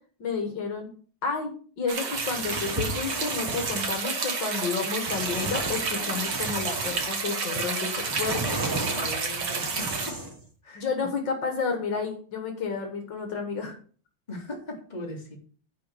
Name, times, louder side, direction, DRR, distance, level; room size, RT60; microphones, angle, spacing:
voice 1, 0.2-0.9 1.2-1.5 1.8-8.6 10.8-13.7, left 5 dB, 65° left, 4 dB, 2.1 m, -31 dB
sound 1, 1.9-10.1, right 4 dB, 60° right, 2.0 m, -30 dB
sound 2, 2.1-4.0 5.1-7.1 7.5-10.4, right 2 dB, 20° right, 0.5 m, -35 dB
voice 2, 8.9-10.2 10.6-11.1 14.3-15.4, left 1 dB, 20° left, -1 dB, 2.4 m, -39 dB
10.5 x 4.3 x 6.7 m, 0.43 s
omnidirectional pair, 2.1 m